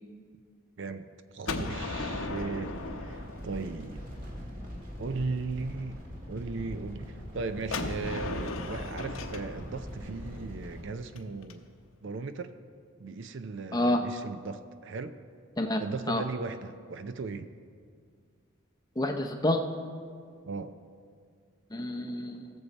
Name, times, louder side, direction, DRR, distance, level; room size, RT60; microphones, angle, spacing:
voice 1, 0.8-4.0 5.0-6.0 6.3-11.7 12.0-12.5 13.0-15.2 15.8-17.5 20.5-20.8, right 4 dB, 60° right, 10 dB, 0.5 m, -37 dB
Gunshot gunfire, 1.4-4.3 7.7-11.5, left 3 dB, 75° left, 0.8 m, -37 dB
sound 1, 1.7-10.8, equal, 40° right, 1.8 m, -42 dB
voice 2, 19.0-19.6 21.7-22.5, left 1 dB, 20° left, 4 dB, 0.6 m, -28 dB
19.0 x 7.1 x 4.1 m, 2.1 s
head